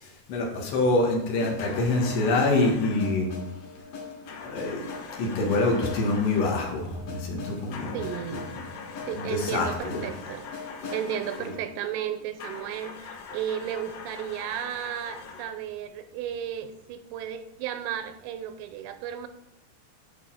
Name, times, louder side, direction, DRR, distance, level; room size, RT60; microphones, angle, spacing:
voice 1, 0.0-3.3 4.4-4.8 5.2-8.0 9.2-10.0 11.4-11.5, left 2 dB, 70° left, 0 dB, 3.8 m, -26 dB
sound 1, 1.4-13.3, left 4 dB, 50° left, 3.6 m, -42 dB
sound 2, 1.6-3.2 4.3-6.7 7.7-11.7 12.4-15.6, left 5 dB, 85° left, 1.6 m, -42 dB
voice 2, 7.9-8.5 9.0-10.5 10.9-19.3, right 10 dB, 90° right, 9 dB, 2.9 m, -34 dB
11.0 x 4.9 x 5.7 m, 0.82 s
omnidirectional pair, 5.1 m